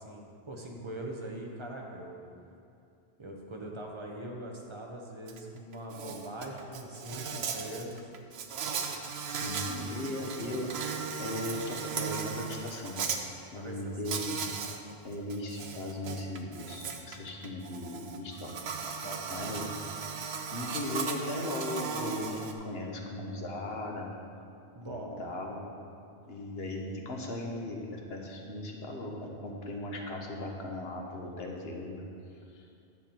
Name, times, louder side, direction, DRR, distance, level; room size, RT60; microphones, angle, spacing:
voice 1, 0.0-2.2 3.2-8.0 13.5-14.2 18.7-19.4 24.7-25.3, right 1 dB, 30° right, -1 dB, 1.1 m, -42 dB
Insect, 5.3-5.4 5.7-13.2 14.0-14.8 15.1-22.5, right 6 dB, 85° right, 1.0 m, -37 dB
voice 2, 9.3-10.7 11.2-13.0 13.5-14.4 15.0-18.5 18.9-19.0 19.3-19.8 20.5-24.1 24.9-25.7 26.3-32.0 32.5-32.6, left 2 dB, 75° left, 0 dB, 1.4 m, -38 dB
10.5 x 7.2 x 4.4 m, 2.5 s
omnidirectional pair, 1.0 m